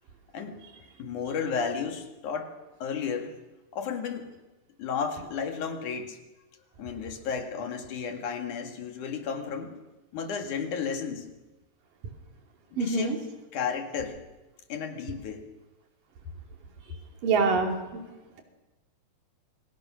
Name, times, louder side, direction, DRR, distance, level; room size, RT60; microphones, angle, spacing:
voice 1, 1.0-3.4 3.7-4.3 4.8-6.2 6.8-9.8 10.1-11.3 12.8-13.2 13.5-14.2 14.7-15.4, left 6 dB, 65° left, 5 dB, 3.4 m, -33 dB
voice 2, 12.8-13.2 17.2-18.0, right 4 dB, 70° right, 3 dB, 4.5 m, -25 dB
28.0 x 24.0 x 6.4 m, 1.1 s
omnidirectional pair, 4.0 m